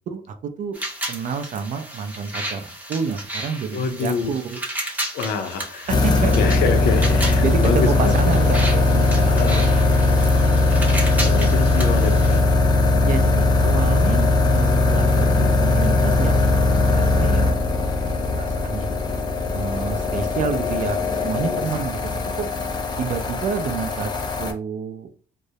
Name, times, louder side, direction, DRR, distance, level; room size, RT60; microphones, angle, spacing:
voice 1, 0.1-0.8 1.1-4.6 5.9-6.3 7.4-9.4 13.0-18.1 18.4-19.0 19.5-22.0 22.4-22.5 23.0-24.1 24.4-25.1, right 6 dB, 50° right, 8 dB, 0.4 m, -29 dB
sound 1, 0.7-12.4, right 1 dB, 10° right, 0.7 m, -33 dB
voice 2, 3.7-4.4 5.1-6.0 6.2-8.4 9.3-9.8 11.2-12.5 21.4-21.7, left 5 dB, 75° left, 6 dB, 0.6 m, -27 dB
sound 2, 5.9-24.5, left 2 dB, 25° left, 0.4 m, -19 dB
2.2 x 2.0 x 2.7 m, 0.39 s
cardioid pair, 110°, 17 cm